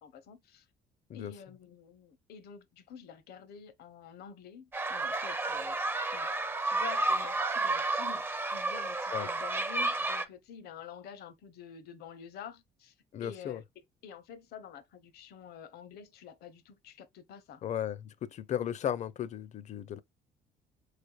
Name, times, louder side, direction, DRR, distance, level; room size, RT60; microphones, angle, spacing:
voice 1, 0.0-0.6 1.1-6.3 6.6-8.2 8.5-12.9 13.2-13.6 14.0-17.6, left 8 dB, 70° left, 0.8 m, -48 dB
sound 1, 4.7-10.3, right 2 dB, 15° right, 0.4 m, -31 dB
voice 2, 13.1-13.6 17.6-20.0, left 10 dB, 45° left, 0.5 m, -35 dB
4.4 x 3.3 x 2.3 m
cardioid pair, 110°, 17 cm